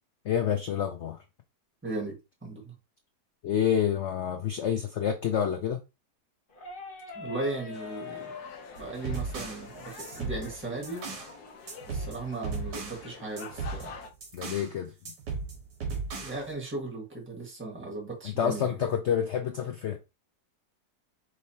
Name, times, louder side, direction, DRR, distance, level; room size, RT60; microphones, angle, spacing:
voice 1, 0.2-1.2 3.4-5.8 14.3-15.1 18.2-20.0, left 8 dB, 85° left, 0.6 m, -28 dB
voice 2, 1.8-2.7 7.1-8.3 8.8-11.1 11.9-13.9 16.2-18.8, right 2 dB, 5° right, 1.4 m, -37 dB
sound 1, 6.5-12.1, left 5 dB, 35° left, 1.0 m, -46 dB
sound 2, 7.7-14.1, left 4 dB, 65° left, 1.2 m, -47 dB
sound 3, 8.8-11.3 11.7-13.0 13.4-14.7 15.1-16.5, right 4 dB, 75° right, 2.0 m, -36 dB
5.4 x 3.2 x 2.7 m
omnidirectional pair, 1.9 m